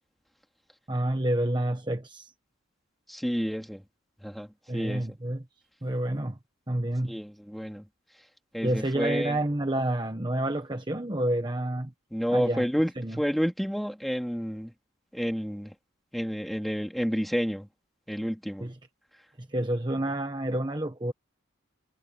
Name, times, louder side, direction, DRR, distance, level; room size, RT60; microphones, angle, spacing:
voice 1, 0.9-2.3 4.7-5.4 5.8-6.4 6.7-7.2 8.6-11.9 12.3-12.6 13.0-13.2 18.6-18.7 19.4-21.1, right 1 dB, 20° right, 1.2 m, -29 dB
voice 2, 3.1-3.8 4.2-5.1 7.0-7.9 8.5-9.4 12.1-12.9 13.2-14.7 15.1-15.7 16.1-17.7 18.1-18.7, equal, ahead, 2.6 m, -30 dB
head